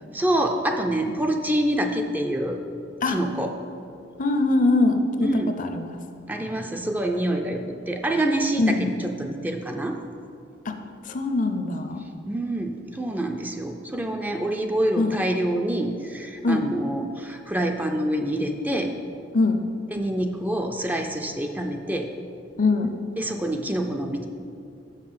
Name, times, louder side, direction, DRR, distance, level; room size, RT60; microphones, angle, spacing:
voice 1, 0.1-2.6 3.1-3.5 5.2-5.5 6.3-10.0 12.3-18.9 19.9-22.1 23.2-24.3, right 1 dB, 10° right, 3 dB, 0.4 m, -26 dB
voice 2, 4.2-6.0 8.6-9.0 10.7-10.8 11.1-12.0 15.0-15.2 16.4-16.7 19.3-19.6 22.6-22.9, left 2 dB, 45° left, 7 dB, 0.5 m, -22 dB
6.6 x 6.0 x 5.7 m, 2.5 s
head